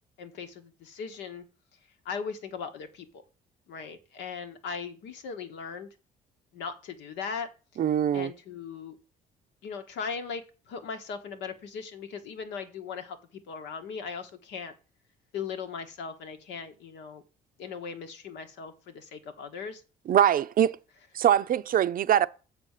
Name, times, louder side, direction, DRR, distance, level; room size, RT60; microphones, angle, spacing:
voice 1, 0.2-1.4 2.0-3.2 3.7-5.9 6.5-7.5 8.1-9.0 9.6-14.7 15.3-17.2 17.6-19.8, left 6 dB, 80° left, 1.3 m, -38 dB
voice 2, 7.8-8.3 20.1-20.8 21.1-22.3, right 10 dB, 50° right, 0.5 m, -23 dB
6.9 x 4.2 x 6.6 m
supercardioid pair, 75°, 18 cm